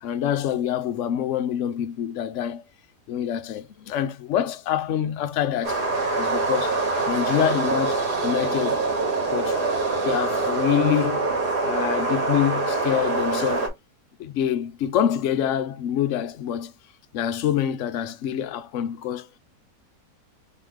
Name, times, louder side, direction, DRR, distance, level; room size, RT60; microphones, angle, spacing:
voice 1, 0.0-2.6 3.1-5.8 6.2-6.8 7.1-8.8 9.3-9.6 10.0-11.3 11.6-13.7 14.2-16.7 17.1-19.3, left 10 dB, 65° left, 0.8 m, -26 dB
sound 1, 5.6-13.7, right 3 dB, 75° right, 2.2 m, -24 dB
3.9 x 3.9 x 3.1 m
omnidirectional pair, 1.7 m